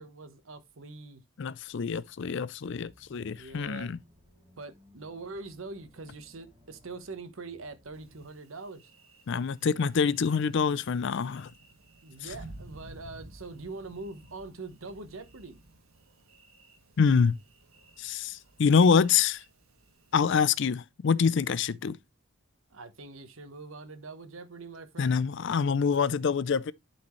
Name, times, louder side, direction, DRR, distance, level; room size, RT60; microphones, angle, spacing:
voice 1, 0.0-1.2 3.1-4.0 4.6-8.9 12.0-15.6 22.7-25.2, right 3 dB, 70° right, 1.1 m, -43 dB
voice 2, 1.4-4.0 9.3-11.5 17.0-17.4 18.0-19.4 20.1-22.0 25.0-26.7, left 6 dB, 60° left, 0.4 m, -26 dB
sound 1, 2.6-8.3, equal, 20° right, 2.1 m, -61 dB
Thunder, 7.9-20.3, right 1 dB, 90° right, 1.8 m, -53 dB
11.5 x 4.3 x 3.1 m
head